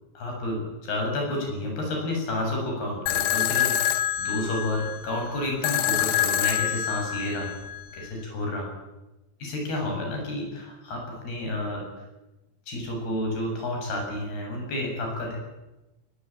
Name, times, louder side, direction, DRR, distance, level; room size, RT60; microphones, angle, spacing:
voice 1, 0.2-7.5 7.9-8.7 9.4-11.9 12.7-15.4, left 1 dB, 70° left, 1 dB, 9.2 m, -30 dB
sound 1, 3.1-8.1, left 12 dB, 85° left, 3.4 m, -26 dB
21.0 x 21.0 x 9.0 m, 1.0 s
omnidirectional pair, 4.7 m